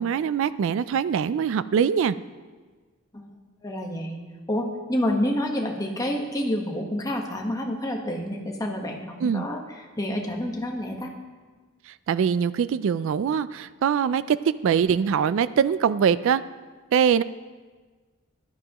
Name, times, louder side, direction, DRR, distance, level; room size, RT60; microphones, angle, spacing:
voice 1, 0.0-2.2 9.2-9.5 11.9-14.4 14.6-16.4 16.9-17.2, right 7 dB, 65° right, 15 dB, 0.3 m, -23 dB
voice 2, 3.6-4.2 4.5-11.2, left 1 dB, 15° left, 1 dB, 1.2 m, -28 dB
14.5 x 12.0 x 3.0 m, 1.4 s
head